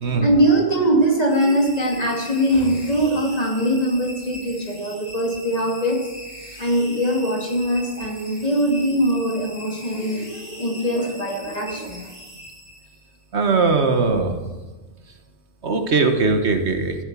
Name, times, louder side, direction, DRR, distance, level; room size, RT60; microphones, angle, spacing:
voice 1, 0.2-6.0 6.6-12.1, right 1 dB, 30° left, 0 dB, 2.4 m, -21 dB
sound 1, 1.3-13.2, equal, 25° right, 4.4 m, -40 dB
voice 2, 13.3-14.3 15.6-16.9, right 4 dB, 65° right, 6 dB, 1.5 m, -20 dB
14.5 x 7.9 x 7.4 m, 1.2 s
omnidirectional pair, 1.3 m